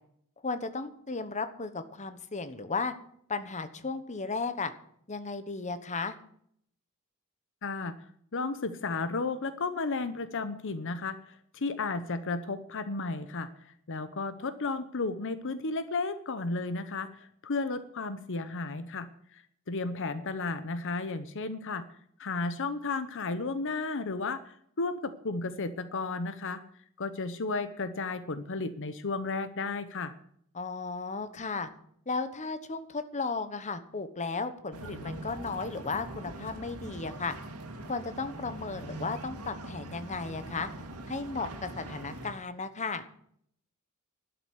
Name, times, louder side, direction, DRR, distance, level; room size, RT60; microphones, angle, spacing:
voice 1, 0.4-2.9 3.3-4.7 5.1-6.1 30.5-31.7 32.1-37.3 37.8-40.7 41.1-43.0, left 4 dB, 35° left, 10 dB, 1.1 m, -35 dB
voice 2, 7.6-7.9 8.3-19.4 19.7-21.8 22.2-26.6 27.0-30.1, left 3 dB, 60° left, 12 dB, 0.9 m, -33 dB
sound 1, 34.7-42.3, right 1 dB, 90° right, 2.4 m, -42 dB
12.5 x 7.8 x 9.4 m, 0.66 s
head